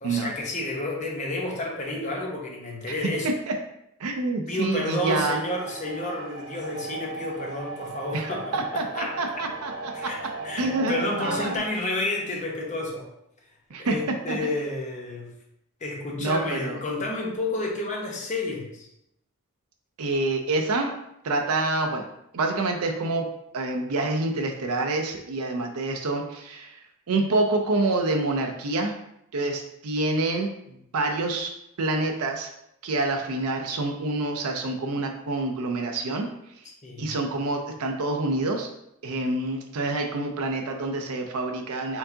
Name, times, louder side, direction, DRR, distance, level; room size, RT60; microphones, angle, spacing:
voice 1, 0.0-3.3 4.5-9.1 9.9-10.2 10.4-13.1 13.8-15.3 15.8-18.9 36.8-37.1, left 2 dB, 35° left, -1 dB, 0.9 m, -30 dB
voice 2, 4.0-5.4 8.1-10.1 10.6-11.5 13.7-13.9 14.3-14.4 16.2-16.8 20.0-20.9 21.2-22.0 22.3-23.3 23.5-26.8 27.1-28.9 29.3-31.5 31.8-32.5 32.8-36.3 37.0-38.7 39.0-42.0, right 2 dB, 85° right, 3 dB, 0.5 m, -27 dB
sound 1, 4.8-11.6, right 3 dB, 50° right, 0.8 m, -38 dB
4.5 x 3.7 x 2.7 m, 0.78 s
head